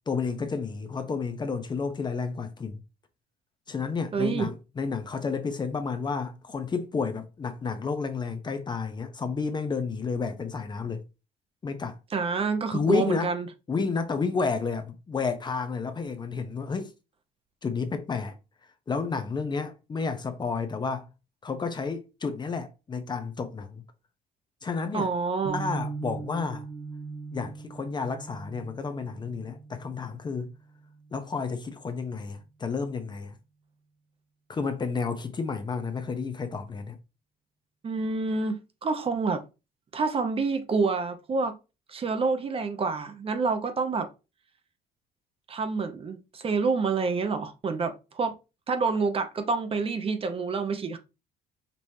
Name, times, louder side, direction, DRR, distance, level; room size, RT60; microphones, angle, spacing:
voice 1, 0.1-2.8 3.7-11.0 11.6-12.0 12.7-13.3 13.7-16.9 17.6-18.4 18.9-21.1 21.4-23.8 24.6-25.1 25.5-26.7 27.3-30.5 31.1-33.4 34.5-37.0, left 5 dB, 25° left, 0.6 m, -31 dB
voice 2, 4.1-4.5 12.1-13.5 24.9-25.6 37.8-39.4 39.9-41.5 41.9-44.1 45.5-48.3 48.7-51.0, right 4 dB, 35° right, 0.7 m, -27 dB
sound 1, 25.4-31.5, right 4 dB, 75° right, 1.1 m, -40 dB
5.3 x 3.0 x 2.7 m
cardioid pair, 110°, 17 cm